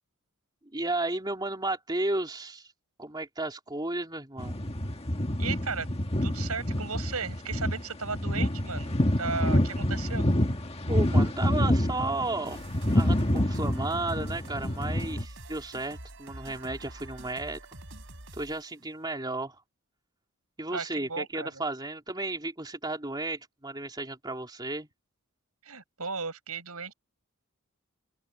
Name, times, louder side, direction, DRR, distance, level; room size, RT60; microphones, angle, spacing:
voice 1, 0.7-2.7 3.0-4.6 10.9-12.6 12.9-17.6 18.3-19.6 20.6-24.9, right 2 dB, 20° right, 3.2 m, -33 dB
sound 1, 4.4-15.2, left 1 dB, 25° left, 1.6 m, -27 dB
voice 2, 5.4-5.9 6.2-10.3 20.7-21.6 25.6-26.9, right 5 dB, 80° right, 6.9 m, -35 dB
sound 2, 12.5-18.7, right 1 dB, 60° right, 6.0 m, -46 dB
open air
head